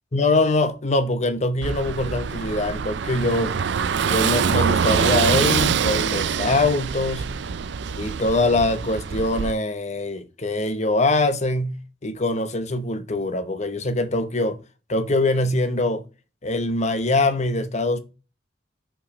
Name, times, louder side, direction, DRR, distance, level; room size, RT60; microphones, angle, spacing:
voice 1, 0.1-3.6 4.0-7.3 8.0-11.7 12.0-14.6 14.9-16.0 16.4-18.0, left 2 dB, 40° left, 0.9 m, -23 dB
Car passing by / Engine, 1.6-9.5, right 6 dB, 65° right, 0.4 m, -24 dB
5.7 x 5.1 x 5.0 m
head